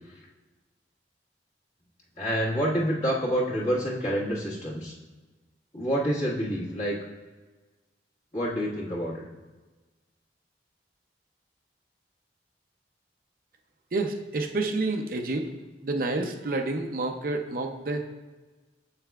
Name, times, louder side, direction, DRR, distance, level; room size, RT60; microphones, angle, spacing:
voice 1, 2.2-4.9 5.7-7.0 8.3-9.2, equal, 40° left, -6 dB, 1.5 m, -27 dB
voice 2, 13.9-15.5 15.8-18.0, right 2 dB, 50° right, 4 dB, 0.6 m, -29 dB
7.5 x 5.6 x 2.3 m, 1.3 s
head